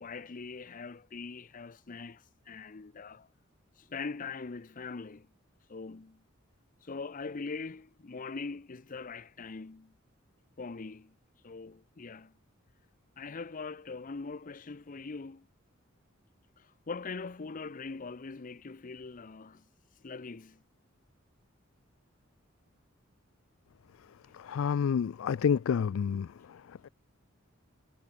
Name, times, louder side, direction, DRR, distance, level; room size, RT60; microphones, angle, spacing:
voice 1, 0.0-3.3 3.8-5.3 5.7-6.2 6.8-9.9 10.6-11.1 11.4-12.3 13.2-15.4 16.6-19.7 20.0-20.6, left 4 dB, 40° left, 0.6 m, -42 dB
voice 2, 24.5-26.3, left 7 dB, 80° left, 0.4 m, -28 dB
head